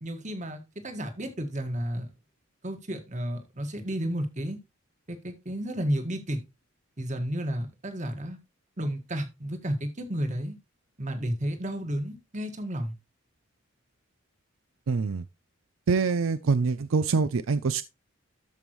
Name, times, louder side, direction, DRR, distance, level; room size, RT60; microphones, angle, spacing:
voice 1, 0.0-2.1 2.6-4.6 5.1-6.4 7.0-8.4 8.8-10.6 11.0-12.9, equal, 35° right, 1.7 m, -32 dB
voice 2, 14.9-15.2 15.9-17.8, right 4 dB, 75° right, 0.5 m, -25 dB
13.0 x 5.4 x 3.1 m
head